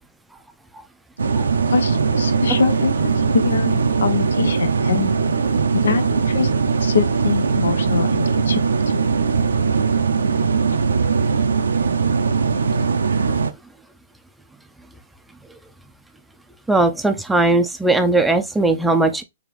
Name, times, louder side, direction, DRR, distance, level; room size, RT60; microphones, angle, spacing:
sound 1, 1.2-13.5, right 5 dB, 85° right, 0.5 m, -20 dB
voice 1, 1.7-5.1 5.7-6.5 6.8-8.6 8.9-9.0, left 5 dB, 80° left, 0.6 m, -23 dB
voice 2, 16.7-19.2, right 2 dB, 5° right, 0.4 m, -18 dB
3.9 x 2.9 x 3.0 m
hypercardioid pair, 130°, 0 cm